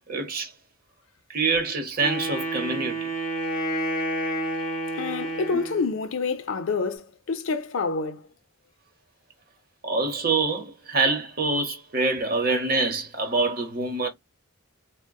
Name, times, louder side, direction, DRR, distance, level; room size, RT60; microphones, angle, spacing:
voice 1, 0.1-0.5 1.3-3.1 5.5-5.6 9.8-14.1, right 3 dB, 45° right, 0.9 m, -25 dB
Wind instrument woodwind instrument, 2.0-6.0, right 1 dB, 40° left, 0.9 m, -29 dB
voice 2, 4.9-8.3, left 4 dB, 80° left, 0.6 m, -28 dB
3.8 x 2.1 x 2.2 m
head